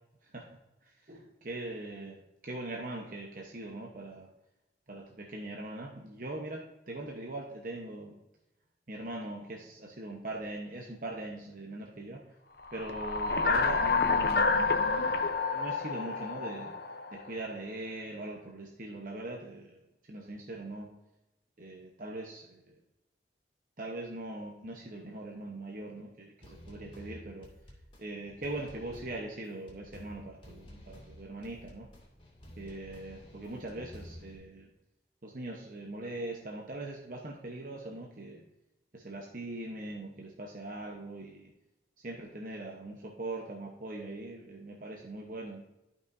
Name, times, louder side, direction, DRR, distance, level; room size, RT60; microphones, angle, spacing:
voice 1, 1.0-2.2 2.4-4.3 4.9-8.1 8.9-12.2 12.7-14.7 15.5-16.7 17.1-19.8 20.1-20.9 21.6-22.7 23.8-27.5 28.0-31.9 32.6-34.7 35.2-38.4 38.9-41.5 42.0-45.7, right 2 dB, 50° right, 0 dB, 0.9 m, -41 dB
sound 1, 12.7-17.3, left 4 dB, 60° left, 0.7 m, -29 dB
sound 2, 26.4-34.4, equal, 30° left, 2.2 m, -51 dB
12.0 x 5.6 x 2.6 m, 0.95 s
head